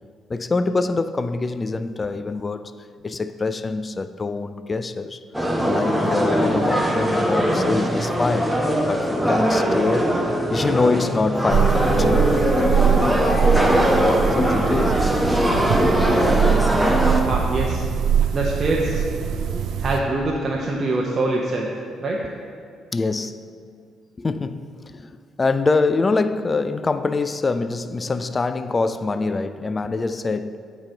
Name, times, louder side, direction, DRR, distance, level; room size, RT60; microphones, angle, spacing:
voice 1, 0.3-2.7 3.0-5.2 5.6-8.6 8.9-10.1 10.5-13.1 13.5-13.9 14.3-15.2 18.2-18.3 19.3-19.6 22.9-23.5 24.2-25.1 25.4-30.6, left 3 dB, 30° left, 0.3 m, -25 dB
sound 1, 5.3-17.2, equal, 5° right, 0.9 m, -20 dB
sound 2, 11.5-20.0, right 7 dB, 65° right, 0.4 m, -22 dB
voice 2, 17.0-17.9 18.3-19.0 19.8-21.7 22.0-22.2, right 2 dB, 40° right, 0.7 m, -24 dB
8.6 x 3.1 x 5.6 m
hypercardioid pair, 50°, 0 cm